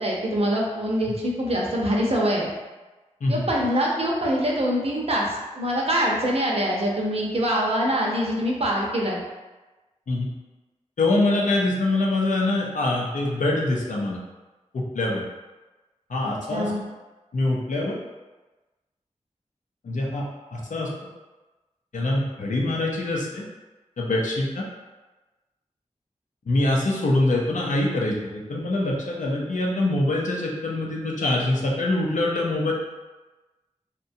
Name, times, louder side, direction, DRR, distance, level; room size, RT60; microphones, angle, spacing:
voice 1, 0.0-2.5 3.3-9.2 16.2-16.8, equal, 55° right, -3 dB, 0.6 m, -24 dB
voice 2, 11.0-14.2 14.7-15.2 16.1-16.7 17.3-18.0 19.8-20.2 20.5-20.9 21.9-23.4 24.0-24.6 26.5-32.7, left 2 dB, 90° left, -2 dB, 0.5 m, -24 dB
2.7 x 2.2 x 2.6 m, 1.2 s
wide cardioid pair, 60°, 13 cm